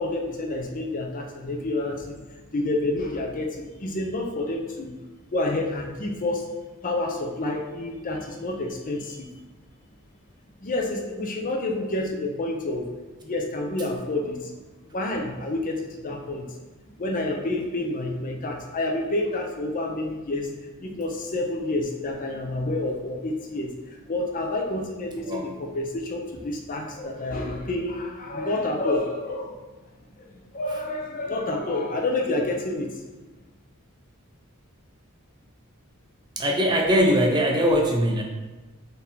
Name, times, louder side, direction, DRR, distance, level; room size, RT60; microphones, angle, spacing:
voice 1, 0.0-2.2 2.5-4.9 5.3-6.5 6.8-9.3 10.6-12.9 13.2-14.5 14.9-16.5 17.0-20.5 20.8-29.5 30.5-32.9, left 2 dB, 40° left, 1 dB, 0.6 m, -29 dB
voice 2, 25.2-25.5 36.4-38.2, equal, 20° right, 1 dB, 0.4 m, -21 dB
4.1 x 2.7 x 3.6 m, 1.2 s
head